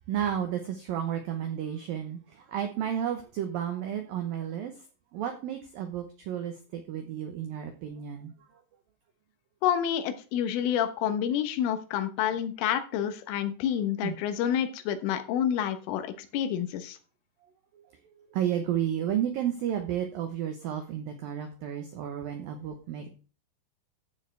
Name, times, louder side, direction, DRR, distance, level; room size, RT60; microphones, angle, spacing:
voice 1, 0.1-4.7 5.1-8.3 14.0-14.2 18.3-23.1, right 10 dB, 85° right, 5 dB, 2.0 m, -32 dB
voice 2, 9.6-17.0, left 9 dB, 80° left, 8 dB, 3.6 m, -28 dB
14.5 x 6.9 x 3.4 m, 0.36 s
omnidirectional pair, 5.6 m